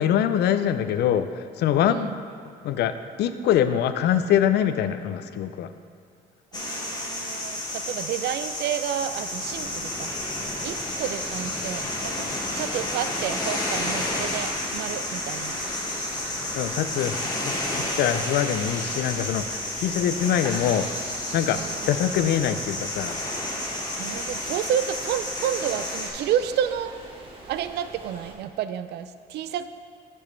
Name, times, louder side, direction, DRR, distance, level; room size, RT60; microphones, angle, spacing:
voice 1, 0.0-2.1 2.6-5.7 16.5-21.6 21.9-23.2, left 9 dB, 70° left, 11 dB, 0.4 m, -24 dB
voice 2, 1.8-2.2 6.5-10.1 10.6-15.6 21.5-22.0 24.0-27.0 27.5-29.7, right 10 dB, 70° right, 12 dB, 0.4 m, -30 dB
sound 1, 6.5-26.1, left 1 dB, 25° left, 1.4 m, -31 dB
sound 2, 9.4-28.3, right 2 dB, 30° right, 1.4 m, -44 dB
8.7 x 6.1 x 3.2 m, 2.2 s
cardioid pair, 85°, 18 cm